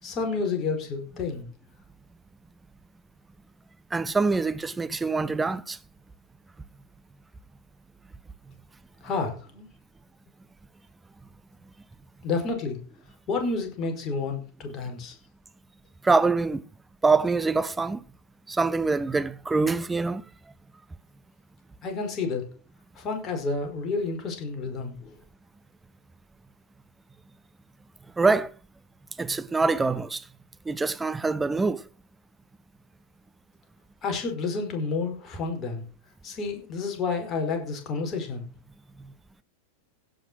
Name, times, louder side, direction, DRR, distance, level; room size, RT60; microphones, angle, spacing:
voice 1, 0.0-1.5 9.0-9.7 12.2-12.8 13.3-15.1 21.8-22.4 22.9-25.1 34.0-35.8 36.2-38.5, left 4 dB, 30° left, 5.0 m, -30 dB
voice 2, 3.9-5.8 16.0-16.6 17.0-18.0 18.5-20.2 28.2-28.5 29.2-30.2 30.7-31.8, right 3 dB, 10° right, 0.8 m, -24 dB
16.0 x 6.5 x 6.2 m
figure-of-eight pair, 90°, 0 cm